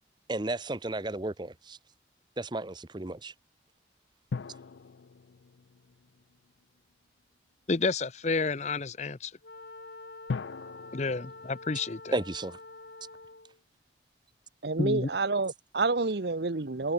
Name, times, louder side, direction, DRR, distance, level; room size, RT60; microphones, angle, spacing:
voice 1, 0.3-1.8 2.4-3.3 12.1-12.6, right 2 dB, 25° right, 0.8 m, -33 dB
sound 1, 4.3-6.9 10.3-12.9 13.2-13.3, left 4 dB, 85° left, 0.5 m, -41 dB
voice 2, 7.7-9.3 10.9-12.2 14.8-15.1, left 3 dB, 40° left, 0.7 m, -30 dB
Wind instrument woodwind instrument, 9.4-13.6, left 2 dB, 60° left, 5.6 m, -47 dB
voice 3, 14.6-16.9, right 3 dB, 65° right, 0.9 m, -28 dB
head